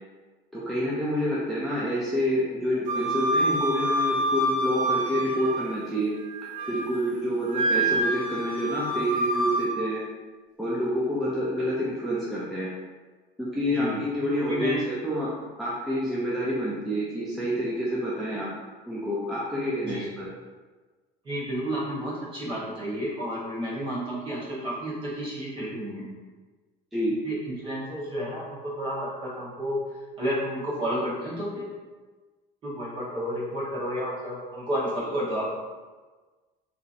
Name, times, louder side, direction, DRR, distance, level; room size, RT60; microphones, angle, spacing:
voice 1, 0.5-6.1 6.7-10.0 10.6-12.7 13.4-15.3 15.6-18.5 18.9-20.3 26.9-27.2, equal, ahead, -9 dB, 0.3 m, -28 dB
Wind instrument woodwind instrument, 2.9-5.9 6.3-7.0 7.5-9.7, right 1 dB, 75° right, 1.3 m, -27 dB
voice 2, 14.2-14.8 19.8-20.1 21.2-26.0 27.2-29.8 30.2-31.7 32.6-35.4, equal, 30° right, -7 dB, 0.9 m, -31 dB
2.9 x 2.6 x 2.4 m, 1.3 s
cardioid pair, 170°, 18 cm